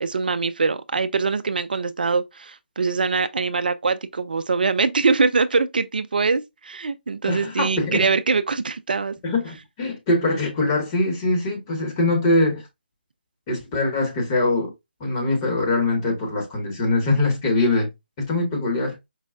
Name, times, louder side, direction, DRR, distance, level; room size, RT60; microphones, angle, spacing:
voice 1, 0.0-9.1, right 4 dB, 60° right, 0.3 m, -23 dB
voice 2, 7.3-8.0 9.2-12.7 13.5-14.7 15.0-17.9 18.2-19.0, left 2 dB, 25° left, 1.1 m, -22 dB
4.7 x 2.0 x 2.4 m
figure-of-eight pair, 150°, 5 cm